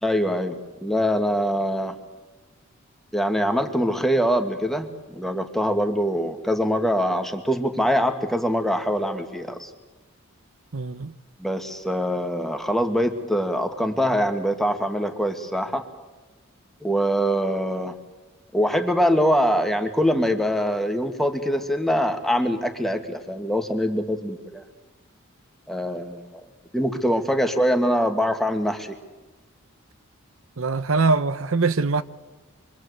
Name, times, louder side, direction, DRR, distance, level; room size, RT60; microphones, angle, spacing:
voice 1, 0.0-2.0 3.1-9.7 11.4-15.8 16.8-18.0 18.5-24.6 25.7-26.5 26.7-29.0, equal, ahead, 1.9 m, -23 dB
voice 2, 10.7-11.1 30.6-32.0, right 3 dB, 75° right, 0.9 m, -22 dB
27.5 x 24.0 x 8.1 m
head